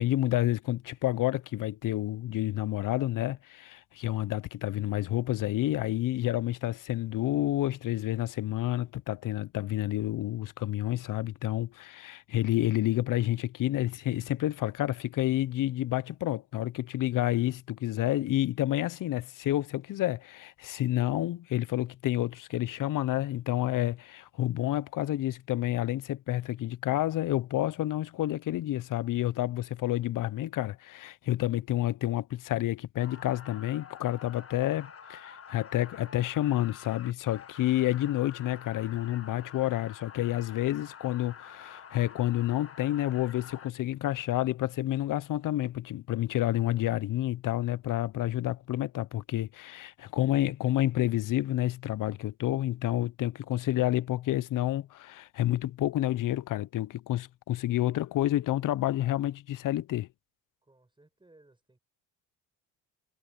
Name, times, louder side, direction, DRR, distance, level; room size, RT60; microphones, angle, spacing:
voice 1, 0.0-60.1, left 14 dB, 60° left, 0.7 m, -29 dB
sound 1, 33.0-43.7, left 7 dB, 40° left, 1.7 m, -48 dB
voice 2, 60.6-61.8, right 2 dB, 15° right, 6.4 m, -61 dB
cardioid pair, 100°, 36 cm